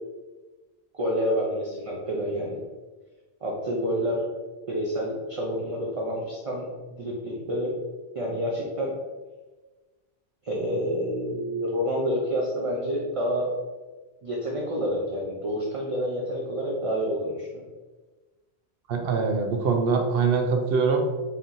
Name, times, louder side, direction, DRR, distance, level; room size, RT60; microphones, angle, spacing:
voice 1, 0.9-2.6 3.4-4.3 4.7-6.7 6.9-7.7 8.1-8.9 10.4-13.5 14.2-17.7, equal, 35° right, -3 dB, 0.6 m, -28 dB
voice 2, 18.9-21.0, right 5 dB, 65° right, 4 dB, 0.8 m, -23 dB
4.4 x 2.7 x 3.8 m, 1.3 s
omnidirectional pair, 1.1 m